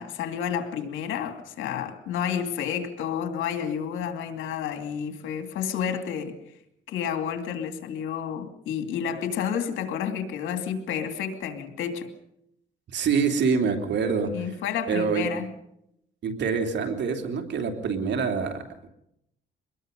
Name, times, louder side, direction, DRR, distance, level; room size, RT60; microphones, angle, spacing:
voice 1, 0.0-6.4 6.9-12.1 14.3-15.5, left 8 dB, 85° left, 7 dB, 2.6 m, -30 dB
voice 2, 12.9-14.5 14.9-15.3 16.2-18.9, right 5 dB, 65° right, 5 dB, 3.3 m, -26 dB
24.5 x 21.0 x 5.3 m, 0.76 s
cardioid pair, 90°, 20 cm